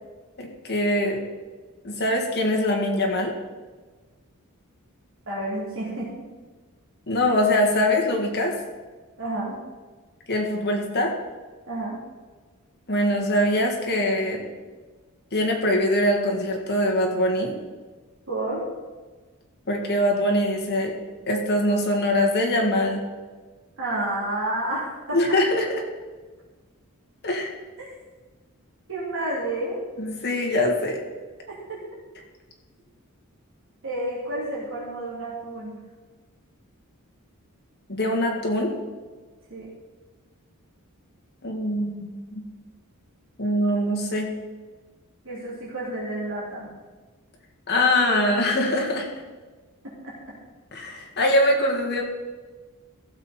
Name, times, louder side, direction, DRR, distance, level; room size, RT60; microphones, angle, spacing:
voice 1, 0.4-1.2 1.8-3.3 7.1-8.5 10.3-11.1 12.9-14.5 15.3-17.5 19.7-20.9 21.3-23.0 25.1-25.8 27.2-27.5 30.0-31.0 37.9-38.7 41.4-42.4 43.4-44.3 47.7-49.1 50.7-52.0, left 1 dB, 50° left, 1 dB, 2.0 m, -23 dB
voice 2, 5.3-6.1 9.2-9.6 11.7-12.0 18.3-18.6 23.8-25.2 27.8-27.9 28.9-29.8 31.7-31.8 33.8-35.8 39.5-39.7 45.2-46.7 50.0-50.1, right 1 dB, 60° right, -6 dB, 3.4 m, -30 dB
15.5 x 7.2 x 4.4 m, 1.3 s
head